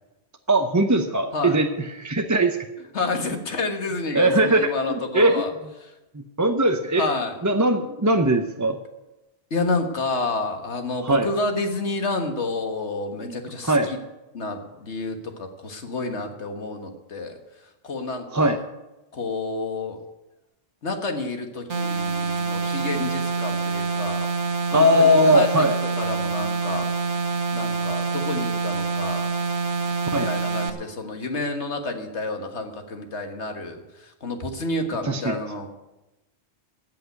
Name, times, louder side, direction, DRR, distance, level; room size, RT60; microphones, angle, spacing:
voice 1, 0.5-1.7 2.0-2.6 4.1-5.4 6.1-7.1 7.4-8.8 11.0-11.3 13.2-13.3 13.7-13.9 18.3-18.6 24.7-25.7 30.1-30.3 35.0-35.4, right 1 dB, 20° right, 5 dB, 0.6 m, -20 dB
voice 2, 2.9-5.5 5.8-5.9 7.0-7.4 9.5-14.0 14.3-17.4 17.8-18.6 19.1-20.0 20.8-24.4 24.7-25.7 26.0-27.0 27.5-29.3 30.2-35.7, left 3 dB, 75° left, 5 dB, 1.9 m, -29 dB
sound 1, 21.7-30.7, right 4 dB, 80° right, 1.6 m, -26 dB
16.0 x 5.8 x 9.4 m, 0.99 s
omnidirectional pair, 1.2 m